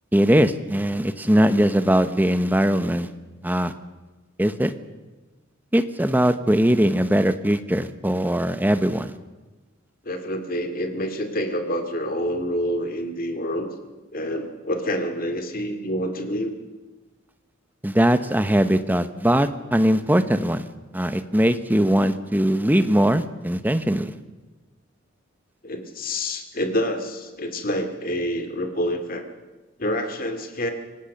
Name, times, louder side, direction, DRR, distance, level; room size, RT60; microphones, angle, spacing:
voice 1, 0.1-3.1 3.4-3.7 4.4-4.7 5.7-9.1 17.8-20.7 20.9-24.1, equal, 10° right, 11 dB, 0.9 m, -20 dB
voice 2, 10.0-13.7 14.1-16.6 25.6-29.2 29.8-30.7, equal, 40° left, 6 dB, 2.3 m, -27 dB
26.0 x 18.0 x 6.6 m, 1.2 s
head